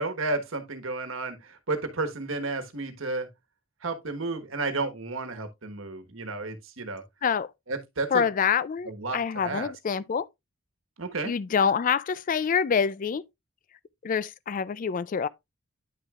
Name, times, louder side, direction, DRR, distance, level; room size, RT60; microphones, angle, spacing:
voice 1, 0.0-3.3 3.8-7.0 7.7-8.2 8.9-9.7 11.0-11.3, right 3 dB, 70° right, 1.3 m, -32 dB
voice 2, 8.1-10.3 11.2-13.2 14.0-15.3, left 6 dB, 40° left, 0.3 m, -26 dB
10.0 x 6.3 x 2.4 m
head